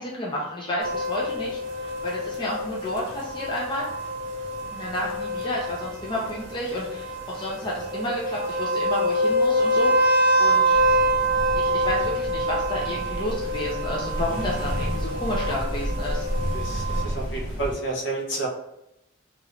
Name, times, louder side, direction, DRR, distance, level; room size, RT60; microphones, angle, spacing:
voice 1, 0.0-3.9 4.7-10.8 11.6-16.2, left 1 dB, 25° left, -5 dB, 0.5 m, -31 dB
sound 1, 0.8-17.0, right 1 dB, 65° right, 0.8 m, -26 dB
sound 2, 10.7-17.7, equal, 85° left, 1.2 m, -31 dB
voice 2, 16.3-18.5, right 2 dB, 60° left, -2 dB, 0.8 m, -31 dB
3.0 x 2.4 x 3.1 m, 0.86 s
head